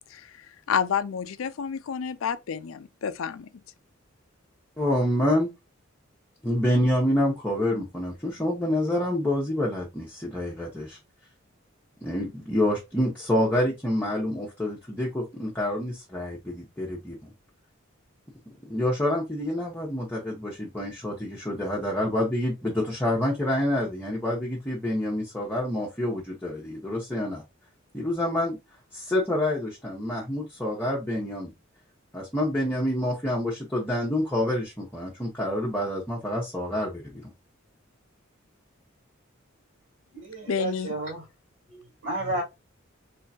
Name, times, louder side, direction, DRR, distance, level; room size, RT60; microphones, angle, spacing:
voice 1, 0.0-3.5 40.5-41.0, left 7 dB, 85° left, 0.4 m, -30 dB
voice 2, 4.8-5.5 6.4-11.0 12.0-17.3 18.7-27.4 27.9-28.6 28.9-31.5 32.1-37.3, left 1 dB, 10° left, 0.9 m, -27 dB
voice 3, 40.1-41.2 41.7-42.4, right 2 dB, 70° right, 2.2 m, -32 dB
3.6 x 3.3 x 2.7 m
head